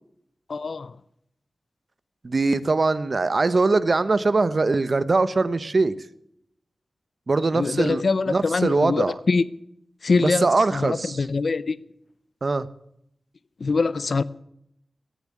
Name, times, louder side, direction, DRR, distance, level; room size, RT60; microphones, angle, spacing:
voice 1, 0.5-0.9 7.5-9.4 10.0-11.8 13.6-14.2, left 4 dB, 70° left, 0.6 m, -23 dB
voice 2, 2.2-5.9 7.3-9.1 10.2-11.2 12.4-12.7, right 3 dB, 55° right, 0.9 m, -22 dB
18.0 x 7.2 x 9.6 m
cardioid pair, 60°, 0 cm